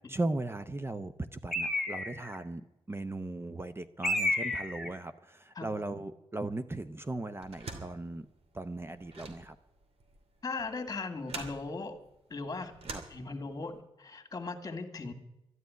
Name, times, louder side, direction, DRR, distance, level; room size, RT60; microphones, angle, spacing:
voice 1, 0.1-2.6 2.9-8.3 8.5-9.6 12.9-13.0, right 2 dB, 20° right, 10 dB, 0.7 m, -37 dB
Bird, 1.5-2.4 4.0-5.0, left 1 dB, ahead, 2.0 m, -31 dB
sound 1, 7.4-13.8, right 3 dB, 65° right, 2.7 m, -47 dB
voice 2, 10.4-12.0 12.3-12.7 13.1-15.1, left 3 dB, 35° left, 6 dB, 2.0 m, -38 dB
12.5 x 10.5 x 9.4 m, 0.91 s
cardioid pair, 90°, 11 cm